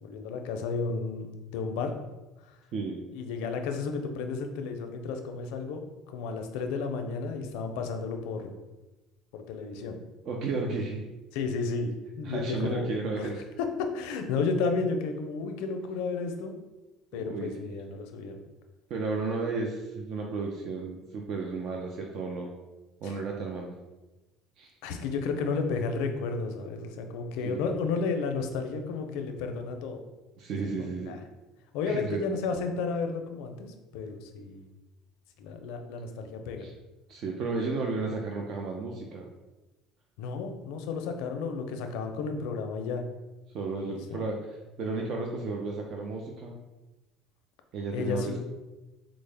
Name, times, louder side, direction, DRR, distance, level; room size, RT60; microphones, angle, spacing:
voice 1, 0.0-1.3 1.5-1.9 3.1-8.5 9.3-10.0 11.3-12.9 13.2-13.3 13.6-16.6 17.1-18.4 23.0-23.1 24.8-30.0 30.8-31.2 31.7-34.7 35.4-36.7 40.2-43.0 43.9-44.2 47.9-48.4, left 4 dB, 80° left, 5 dB, 0.5 m, -32 dB
voice 2, 2.7-3.0 10.3-11.1 12.2-13.4 17.1-17.5 18.9-22.5 23.0-23.8 24.6-24.7 27.4-27.6 30.4-31.2 31.8-32.2 36.6-36.7 37.1-39.3 43.5-44.4 44.8-46.5 47.7-48.4, right 3 dB, 55° right, 1 dB, 0.5 m, -33 dB
4.4 x 2.0 x 3.3 m, 1.1 s
cardioid pair, 115°, 0 cm